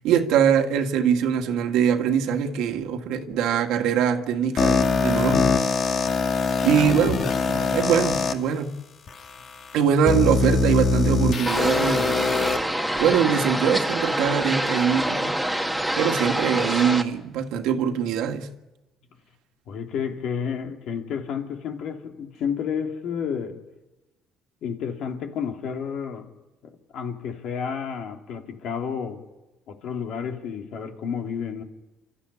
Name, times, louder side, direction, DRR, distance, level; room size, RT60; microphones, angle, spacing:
voice 1, 0.0-5.6 6.6-8.7 9.7-12.3 13.0-15.4 16.0-18.5, right 8 dB, 85° right, 1.8 m, -23 dB
sound 1, 4.6-8.3 9.1-9.2 10.1-12.6, left 4 dB, 50° left, 2.0 m, -22 dB
sound 2, 11.5-17.0, right 1 dB, ahead, 1.7 m, -26 dB
voice 2, 19.7-23.6 24.6-26.3 26.6-29.2 29.7-31.6, left 7 dB, 70° left, 2.9 m, -31 dB
28.5 x 13.5 x 9.9 m
cardioid pair, 115°, 0 cm